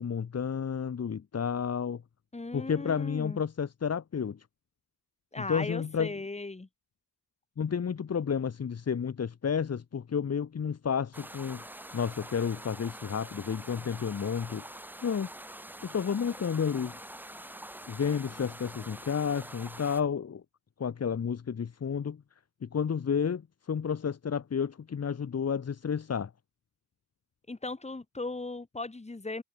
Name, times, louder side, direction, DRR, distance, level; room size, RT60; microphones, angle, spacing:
voice 1, 0.0-2.0 2.5-4.4 5.5-6.1 7.6-11.6 11.9-15.3 15.8-17.0 17.9-20.4 20.8-22.2 22.6-23.4 23.7-26.3, left 7 dB, 40° left, 3.0 m, -31 dB
voice 2, 2.3-3.4 5.3-6.7 27.5-29.4, left 2 dB, 15° left, 7.4 m, -37 dB
sound 1, 11.1-20.0, right 1 dB, 5° right, 2.2 m, -45 dB
cardioid pair, 100°, 40 cm